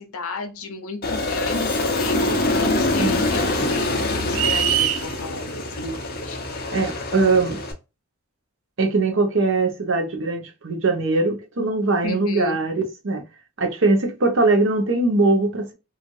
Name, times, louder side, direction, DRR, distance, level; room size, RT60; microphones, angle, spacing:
voice 1, 0.0-5.9 6.2-6.4 12.0-12.6, left 3 dB, 85° left, 0.7 m, -33 dB
Aircraft, 1.0-7.7, left 2 dB, 45° left, 0.7 m, -24 dB
sound 1, 4.3-5.0, right 11 dB, 80° right, 0.4 m, -21 dB
voice 2, 6.7-7.6 8.8-13.2 13.6-15.7, right 3 dB, 60° right, 0.7 m, -21 dB
3.1 x 2.4 x 2.6 m
head